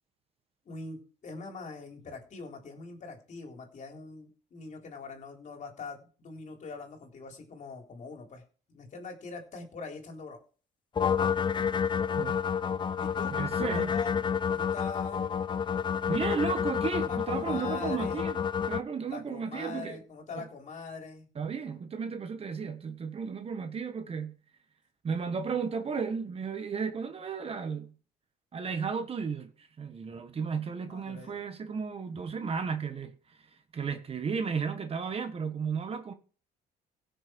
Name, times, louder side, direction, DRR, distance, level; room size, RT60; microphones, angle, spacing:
voice 1, 0.7-8.4 8.7-10.4 13.0-15.3 16.2-16.5 17.1-18.3 19.1-21.3 30.9-31.4, left 4 dB, 45° left, 3.7 m, -43 dB
sound 1, 11.0-18.8, left 7 dB, 30° left, 0.5 m, -29 dB
voice 2, 13.3-13.9 16.1-18.4 18.7-20.0 20.3-20.5 21.3-24.3 25.0-27.9 28.5-33.4 33.7-36.1, right 5 dB, 35° right, 1.4 m, -34 dB
17.0 x 6.6 x 4.6 m
cardioid pair, 110°, 17 cm